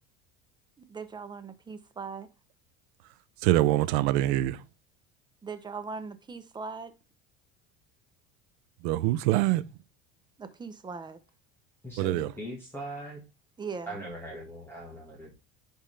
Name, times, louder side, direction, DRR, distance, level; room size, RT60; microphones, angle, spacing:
voice 1, 0.9-2.3 5.4-6.9 10.4-11.2 13.6-14.0, right 5 dB, 15° right, 0.8 m, -39 dB
voice 2, 3.4-4.6 8.8-9.6 12.0-12.3, right 15 dB, 80° right, 0.6 m, -24 dB
voice 3, 11.8-13.2 13.9-15.3, right 1 dB, 5° left, 1.7 m, -40 dB
10.0 x 3.6 x 3.3 m
cardioid pair, 135°, 31 cm